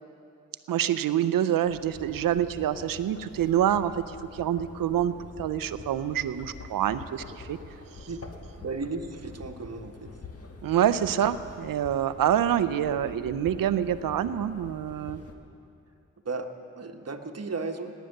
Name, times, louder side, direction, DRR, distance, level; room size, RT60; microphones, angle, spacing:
voice 1, 0.7-7.6 10.6-15.2, right 10 dB, 85° right, 14 dB, 0.6 m, -26 dB
sound 1, 1.6-15.3, left 3 dB, 45° left, 1.7 m, -45 dB
voice 2, 8.6-10.1 16.2-16.5 16.8-17.9, right 4 dB, 50° right, 5 dB, 1.3 m, -35 dB
18.5 x 9.2 x 6.6 m, 2.6 s
cardioid pair, 40°, 33 cm